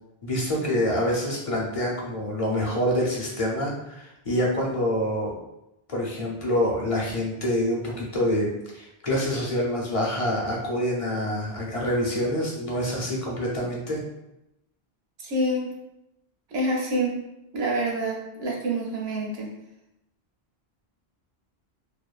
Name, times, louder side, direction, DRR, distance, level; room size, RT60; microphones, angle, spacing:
voice 1, 0.2-5.3 5.9-8.5 8.7-14.0, equal, 40° left, -3 dB, 0.5 m, -26 dB
voice 2, 15.2-15.7 16.5-17.2 17.5-19.5, right 1 dB, 75° right, -2 dB, 0.9 m, -27 dB
2.7 x 2.2 x 2.3 m, 0.87 s
omnidirectional pair, 1.0 m